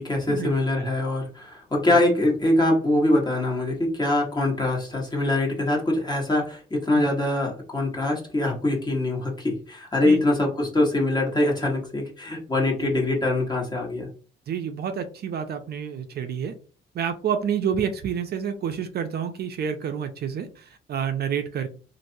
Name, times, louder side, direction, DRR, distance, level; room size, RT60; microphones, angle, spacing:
voice 1, 0.0-14.1, left 1 dB, 20° left, -1 dB, 1.3 m, -23 dB
voice 2, 14.5-16.5 16.9-21.7, right 8 dB, 55° right, 7 dB, 0.5 m, -29 dB
3.1 x 2.5 x 2.7 m, 0.37 s
cardioid pair, 90°, 20 cm